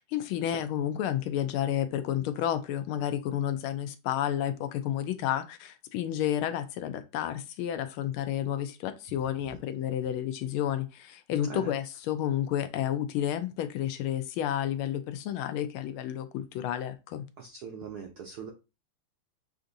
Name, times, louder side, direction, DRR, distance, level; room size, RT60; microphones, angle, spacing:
voice 1, 0.0-17.2, left 11 dB, 80° left, 1.4 m, -31 dB
voice 2, 17.4-18.5, right 7 dB, 75° right, 0.9 m, -41 dB
6.7 x 2.5 x 2.6 m
omnidirectional pair, 2.4 m